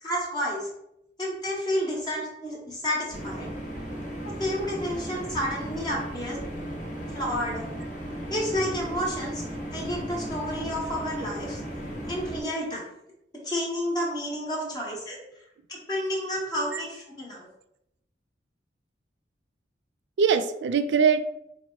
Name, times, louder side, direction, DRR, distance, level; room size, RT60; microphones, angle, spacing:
voice 1, 0.0-0.7 1.2-3.5 4.2-6.4 7.1-7.7 8.3-9.4 9.7-11.6 12.1-12.9 13.4-15.2 15.7-17.5, equal, 25° left, -4 dB, 1.1 m, -30 dB
voice 2, 1.9-2.2 3.7-3.8 14.6-14.7 16.6-16.9 20.2-21.2, right 6 dB, 75° right, 10 dB, 0.4 m, -24 dB
sound 1, 3.1-12.4, equal, 45° left, 0.9 m, -35 dB
4.2 x 2.1 x 4.4 m, 0.81 s
head